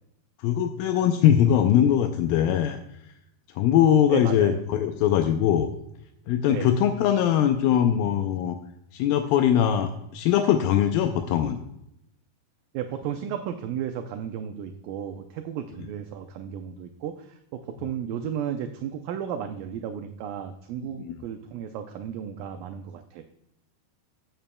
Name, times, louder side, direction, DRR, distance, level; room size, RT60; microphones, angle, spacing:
voice 1, 0.4-2.8 3.6-5.7 6.3-8.6 8.9-11.6 21.0-21.2, left 10 dB, 80° left, 6 dB, 2.2 m, -21 dB
voice 2, 4.1-4.6 6.5-6.7 12.7-23.2, right 9 dB, 80° right, 6 dB, 2.0 m, -34 dB
16.0 x 7.3 x 2.2 m, 0.80 s
omnidirectional pair, 4.6 m